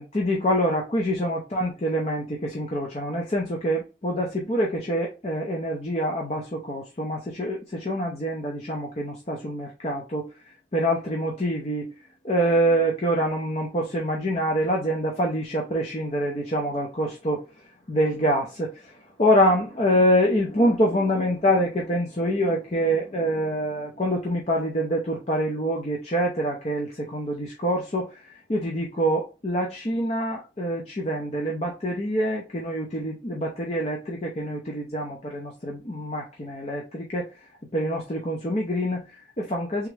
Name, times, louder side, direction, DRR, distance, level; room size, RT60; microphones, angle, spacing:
voice 1, 0.0-10.3 10.7-11.9 12.2-17.4 17.9-37.3 37.7-39.9, equal, 35° left, 0.7 m, -26 dB
3.5 x 3.2 x 3.2 m
head